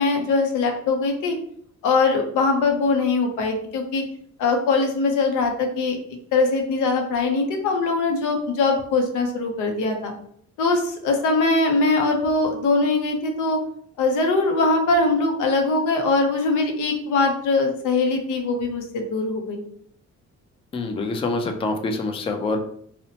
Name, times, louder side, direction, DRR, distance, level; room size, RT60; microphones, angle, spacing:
voice 1, 0.0-1.4 1.8-4.0 4.4-6.0 6.3-10.1 10.6-13.6 14.0-19.6, left 3 dB, 85° left, 3 dB, 0.6 m, -21 dB
voice 2, 20.7-22.6, left 3 dB, 20° left, 5 dB, 0.3 m, -25 dB
2.7 x 2.1 x 2.7 m, 0.64 s
cardioid pair, 90°, 30 cm